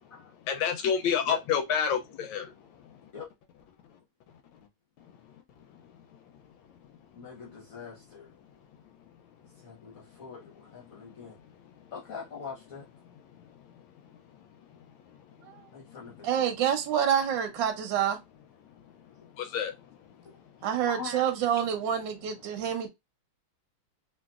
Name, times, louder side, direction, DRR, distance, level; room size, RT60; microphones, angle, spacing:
voice 1, 0.5-2.5 19.4-19.7, left 7 dB, 75° left, 1.2 m, -28 dB
voice 2, 7.1-8.3 9.6-11.4 11.9-12.9 15.7-16.5 19.0-19.3 20.2-21.2, left 5 dB, 55° left, 0.9 m, -43 dB
voice 3, 16.2-18.2 20.6-22.9, right 9 dB, 70° right, 1.2 m, -27 dB
3.2 x 2.8 x 2.3 m
omnidirectional pair, 2.3 m